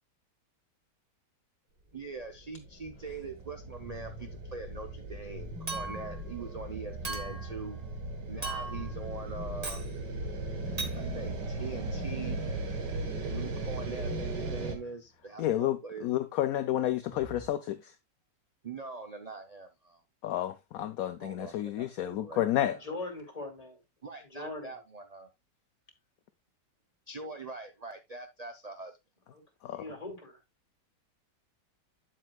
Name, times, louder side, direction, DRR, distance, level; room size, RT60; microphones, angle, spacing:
voice 1, 1.9-7.8 8.3-9.8 10.9-12.4 13.2-16.1 18.6-20.0 21.2-22.8 24.0-25.3 27.1-29.0, right 4 dB, 50° right, 0.4 m, -43 dB
sound 1, 2.2-14.8, right 2 dB, 75° right, 2.1 m, -37 dB
sound 2, 3.8-4.5 5.3-8.1 8.7-14.9 15.2-15.3 17.1-17.5, left 1 dB, 5° right, 1.8 m, -48 dB
Chink clink, 5.7-6.2 7.0-7.5 8.4-8.9 9.6-9.9 10.8-11.0, right 3 dB, 25° right, 1.2 m, -37 dB
voice 2, 15.4-17.9 20.2-22.8 29.6-29.8, left 12 dB, 70° left, 0.9 m, -30 dB
voice 3, 22.7-23.8 24.2-24.8 29.3-29.4 29.7-30.4, left 2 dB, 20° left, 2.9 m, -41 dB
8.9 x 7.6 x 2.3 m
omnidirectional pair, 1.9 m